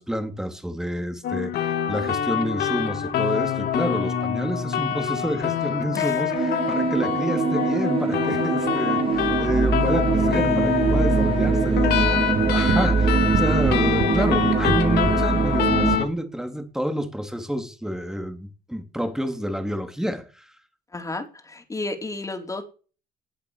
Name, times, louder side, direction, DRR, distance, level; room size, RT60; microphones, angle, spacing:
voice 1, 0.0-20.5, equal, 5° right, 3.5 m, -29 dB
sound 1, 1.2-16.1, left 9 dB, 70° left, 3.4 m, -25 dB
sound 2, 6.3-16.0, right 5 dB, 35° right, 2.9 m, -22 dB
sound 3, 12.4-15.2, right 6 dB, 65° right, 3.5 m, -26 dB
voice 2, 20.9-22.6, left 2 dB, 20° left, 4.5 m, -32 dB
19.5 x 11.0 x 6.8 m
cardioid pair, 110°, 17 cm